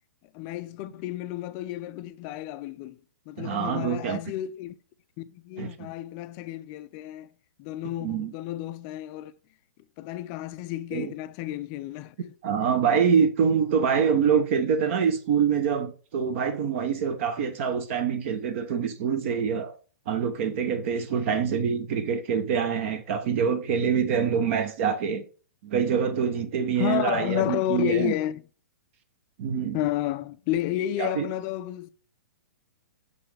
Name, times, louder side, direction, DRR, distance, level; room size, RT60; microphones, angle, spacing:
voice 1, 0.3-3.0 3.3-4.7 5.2-7.3 7.6-9.3 10.0-12.1 21.7-21.8 26.8-28.4 29.7-31.9, left 14 dB, 30° left, 0.4 m, -31 dB
voice 2, 3.4-4.2 5.6-5.9 8.0-8.3 10.9-11.1 12.2-19.7 20.1-25.2 25.6-28.1 29.4-29.8 31.0-31.3, right 7 dB, 45° right, 0.8 m, -25 dB
6.4 x 5.5 x 3.3 m
hypercardioid pair, 150°, 9 cm